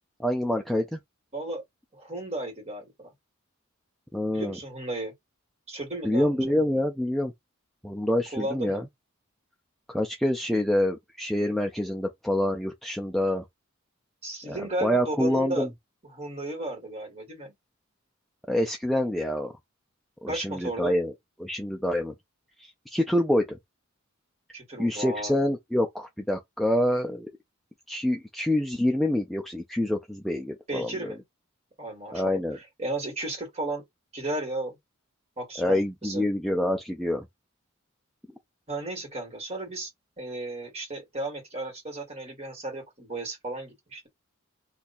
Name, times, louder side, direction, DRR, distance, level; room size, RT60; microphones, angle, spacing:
voice 1, 0.2-1.0 4.1-4.6 6.0-7.3 7.8-8.8 9.9-13.4 14.5-15.7 18.5-19.5 20.2-21.1 21.4-22.1 22.6-23.6 24.8-27.3 27.9-31.1 32.1-32.6 35.6-37.2, left 1 dB, ahead, 0.4 m, -26 dB
voice 2, 1.9-3.1 4.3-5.1 5.7-6.5 8.3-8.8 14.2-15.7 16.1-17.5 20.3-21.0 24.5-25.4 30.7-31.2 31.8-33.8 34.1-34.8 35.4-36.2 38.7-39.9 40.2-44.1, right 2 dB, 30° right, 1.8 m, -34 dB
2.8 x 2.3 x 4.1 m
head